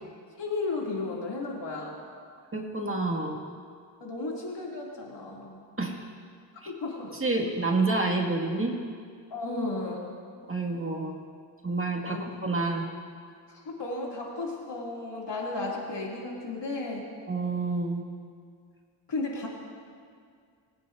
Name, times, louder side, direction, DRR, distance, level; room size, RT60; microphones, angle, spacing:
voice 1, 0.4-2.0 4.0-5.6 6.6-7.1 9.3-10.2 12.1-12.2 13.5-17.1 19.1-19.5, left 3 dB, 70° left, -3 dB, 2.5 m, -34 dB
voice 2, 2.5-3.4 5.8-5.9 6.6-6.7 7.2-8.8 10.5-11.1 11.6-12.8 17.3-18.0, right 3 dB, 30° right, -1 dB, 1.9 m, -28 dB
21.5 x 9.1 x 2.6 m, 2.2 s
cardioid pair, 45°, 43 cm